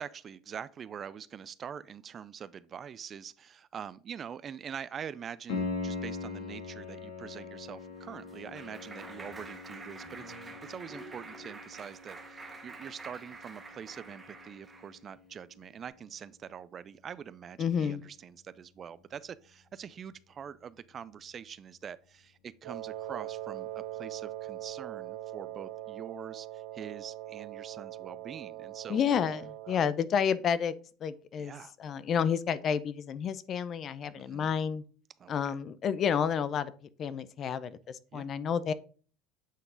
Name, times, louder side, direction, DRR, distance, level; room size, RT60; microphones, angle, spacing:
voice 1, 0.0-29.0 29.7-29.9 31.4-31.8 34.2-34.5 35.2-35.5 38.1-38.3, right 8 dB, 30° right, 0.3 m, -44 dB
Piano, 5.5-16.1 19.5-19.6, left 3 dB, 90° left, 2.3 m, -42 dB
Clapping, 7.7-15.0, right 3 dB, 15° right, 1.4 m, -48 dB
voice 2, 17.6-18.0 28.9-30.7 31.0-31.5 31.8-34.8 35.3-36.7 37.0-38.7, left 7 dB, 35° left, 0.5 m, -30 dB
Wind instrument woodwind instrument, 22.6-29.9, right 14 dB, 75° right, 0.8 m, -41 dB
8.2 x 3.8 x 3.8 m
supercardioid pair, 130°, 0 cm